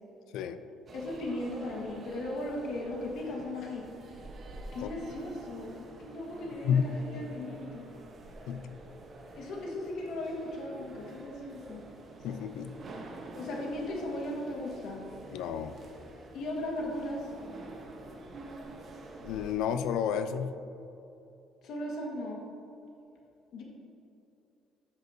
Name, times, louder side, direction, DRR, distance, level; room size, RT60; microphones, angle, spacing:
voice 1, 0.9-3.9 4.7-7.9 9.3-11.8 13.3-15.0 16.3-17.3 21.6-22.4 23.5-23.6, left 1 dB, 65° left, -1 dB, 1.6 m, -37 dB
sound 1, 0.9-19.5, right 2 dB, 40° right, 1.0 m, -48 dB
voice 2, 8.5-8.8 12.2-12.8 15.3-15.8 19.2-20.6, left 8 dB, 80° left, 10 dB, 0.5 m, -31 dB
13.0 x 6.6 x 2.7 m, 2.8 s
cardioid pair, 135°, 0 cm